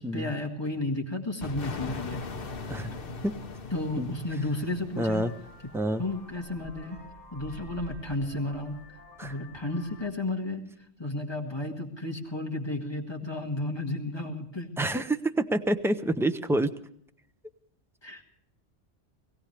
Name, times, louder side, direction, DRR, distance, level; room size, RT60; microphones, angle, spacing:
voice 1, 0.0-2.2 3.7-5.2 6.0-7.0 7.3-8.8 9.2-10.6 11.0-14.7 18.0-18.2, left 2 dB, 25° left, 2 dB, 1.9 m, -32 dB
sound 1, 1.4-6.1, left 3 dB, 55° left, 1.2 m, -40 dB
Vehicle horn car horn honking, 4.9-10.1, left 1 dB, 30° right, 2.9 m, -49 dB
voice 2, 5.0-5.3 5.7-6.0 9.2-9.3 14.8-16.7, right 1 dB, 5° right, 9 dB, 0.4 m, -27 dB
21.5 x 16.0 x 3.3 m, 0.68 s
omnidirectional pair, 1.1 m